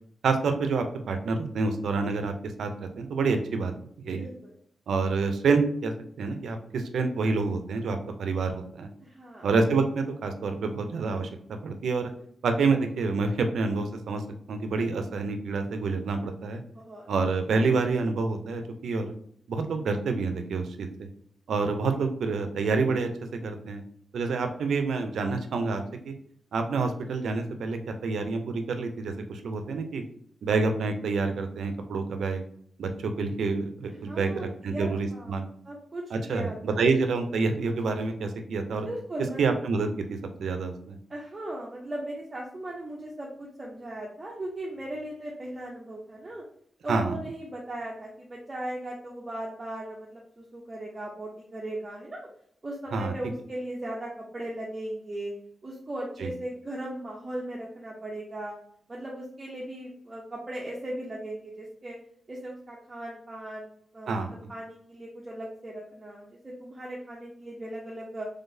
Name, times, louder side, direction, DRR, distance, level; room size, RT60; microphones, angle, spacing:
voice 1, 0.2-2.3 2.6-2.7 3.0-3.7 4.0-4.3 4.9-8.9 9.4-12.1 12.4-14.2 14.5-16.6 17.1-19.1 19.5-21.1 21.5-23.8 24.1-26.1 26.5-30.0 30.4-32.4 32.8-35.5 36.1-38.9 39.4-39.9 40.4-41.0 46.9-47.2 52.9-53.1 56.2-56.3 64.1-64.3, right 4 dB, 85° right, 6 dB, 0.5 m, -28 dB
voice 2, 4.2-4.5 9.0-9.5 16.7-17.1 34.0-35.4 35.6-36.9 38.8-39.4 41.1-46.4 46.8-52.2 52.6-55.3 55.6-58.5 58.9-62.0 62.3-68.3, right 1 dB, 20° right, -3 dB, 0.6 m, -38 dB
3.8 x 3.3 x 2.6 m, 0.65 s
wide cardioid pair, 175°, 0 cm